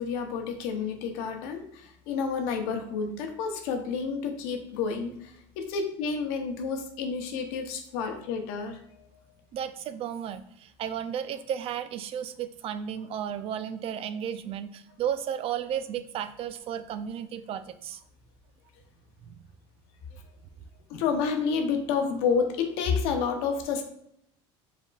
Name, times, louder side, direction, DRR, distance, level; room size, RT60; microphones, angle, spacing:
voice 1, 0.0-9.1 20.9-23.8, left 5 dB, 80° left, 4 dB, 0.8 m, -30 dB
voice 2, 9.5-18.0 19.2-19.4, right 9 dB, 50° right, 12 dB, 0.4 m, -34 dB
4.9 x 3.4 x 2.4 m, 0.73 s
supercardioid pair, 100°, 13 cm